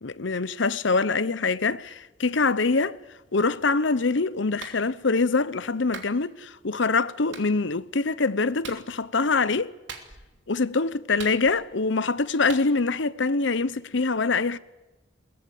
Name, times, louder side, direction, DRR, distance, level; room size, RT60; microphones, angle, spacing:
voice 1, 0.0-3.0 3.3-9.7 10.5-14.6, left 3 dB, 65° left, 0.9 m, -24 dB
Clapping, 4.6-4.8 5.9-6.1 7.3-7.5 8.6-8.9 9.9-10.4 11.2-11.8 12.5-12.7, right 5 dB, 65° right, 3.0 m, -40 dB
22.0 x 20.0 x 9.3 m
head